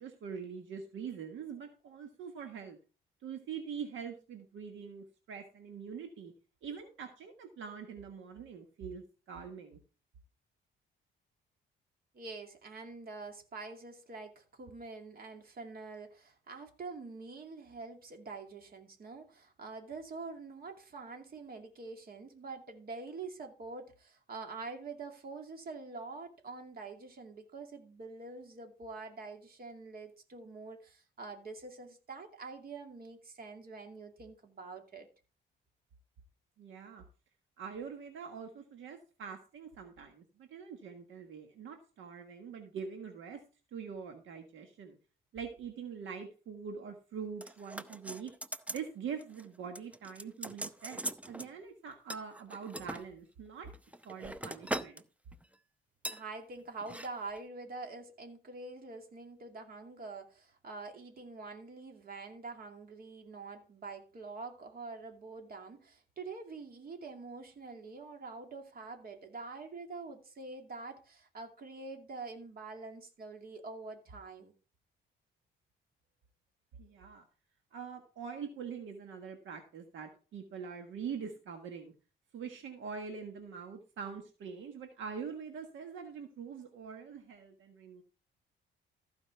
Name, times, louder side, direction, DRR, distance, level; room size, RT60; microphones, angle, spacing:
voice 1, 0.0-2.8 3.2-6.3 6.6-9.8 36.6-37.0 37.6-43.4 43.7-45.0 45.3-48.3 48.7-53.7 54.0-55.0 76.8-77.2 77.7-81.9 82.3-88.0, right 6 dB, 75° right, 1.5 m, -44 dB
voice 2, 12.1-35.1 56.1-74.5, right 3 dB, 50° right, 2.5 m, -46 dB
sound 1, 47.4-48.9 49.2-49.5 49.7-51.5 52.1-53.0 53.7-55.0 55.3-55.5 56.0-56.2 56.8-57.1 57.4-57.5, right 1 dB, 5° right, 0.6 m, -41 dB
14.5 x 5.2 x 4.6 m
cardioid pair, 90°, 20 cm